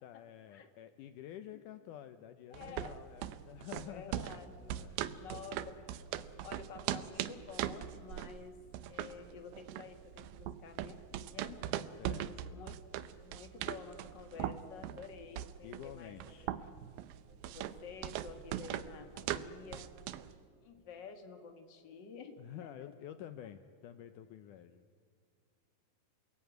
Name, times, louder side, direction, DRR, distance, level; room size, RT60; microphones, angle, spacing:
voice 1, 0.0-4.2 4.6-5.0 12.0-12.6 15.6-16.5 22.4-24.9, left 11 dB, 80° left, 10 dB, 1.8 m, -50 dB
voice 2, 2.5-3.0 3.7-4.9 5.2-6.1 6.4-8.6 8.9-11.6 12.2-12.8 13.2-16.3 17.4-19.9 20.6-22.7, left 5 dB, 40° left, 6 dB, 1.9 m, -50 dB
sound 1, 2.5-20.3, right 12 dB, 75° right, 2.6 m, -41 dB
28.5 x 20.0 x 9.3 m, 2.2 s
omnidirectional pair, 4.6 m